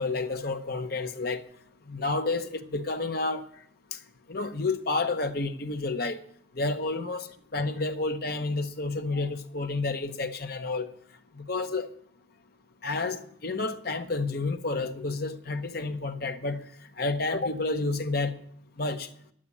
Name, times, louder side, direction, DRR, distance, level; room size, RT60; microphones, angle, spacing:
voice 1, 0.0-1.4 1.9-3.4 4.3-6.2 6.6-10.9 11.4-11.9 12.8-16.7 17.0-18.4 18.8-19.1, left 3 dB, 50° left, 0.9 m, -30 dB
11.0 x 8.7 x 9.9 m
head